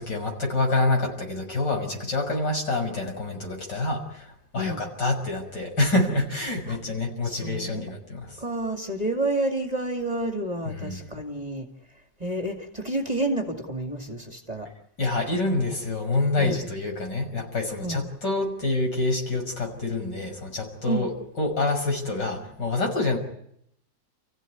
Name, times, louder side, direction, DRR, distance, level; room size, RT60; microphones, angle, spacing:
voice 1, 0.0-8.4 10.6-11.1 15.0-23.2, left 2 dB, 75° left, 2 dB, 6.7 m, -27 dB
voice 2, 7.2-7.9 8.4-11.7 12.2-14.7 16.3-16.6 17.8-18.0 20.9-21.1, right 2 dB, 20° right, 3 dB, 2.5 m, -29 dB
30.0 x 16.0 x 9.5 m, 0.73 s
omnidirectional pair, 1.9 m